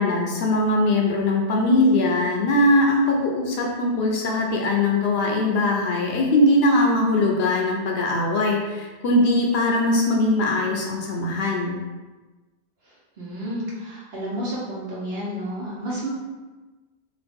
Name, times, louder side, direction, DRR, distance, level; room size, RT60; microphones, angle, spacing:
voice 1, 0.0-11.8, left 1 dB, 75° left, 0 dB, 0.8 m, -21 dB
voice 2, 12.8-16.1, equal, 75° right, -6 dB, 1.1 m, -31 dB
3.0 x 2.4 x 3.4 m, 1.2 s
omnidirectional pair, 1.0 m